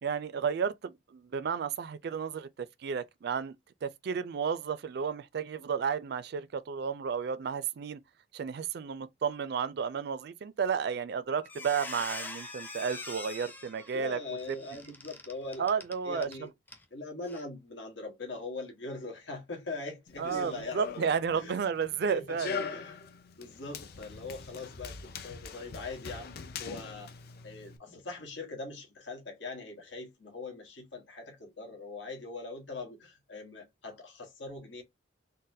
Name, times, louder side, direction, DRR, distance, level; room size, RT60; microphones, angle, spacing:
voice 1, 0.0-2.5 2.8-3.5 3.8-8.0 8.3-14.2 14.5-14.6 15.6-16.3 20.2-22.6, right 6 dB, 60° right, 0.4 m, -32 dB
Squeak, 10.9-11.1 11.4-16.4 16.7-16.8 17.2-17.4, left 2 dB, 10° left, 0.5 m, -43 dB
voice 2, 13.9-15.7 16.0-16.5 16.9-21.6 22.1-22.3 22.7-23.0 23.4-27.1 27.4-34.8, left 3 dB, 85° left, 1.2 m, -41 dB
Run, 20.1-27.8, left 5 dB, 55° left, 0.5 m, -42 dB
3.9 x 2.1 x 2.6 m
head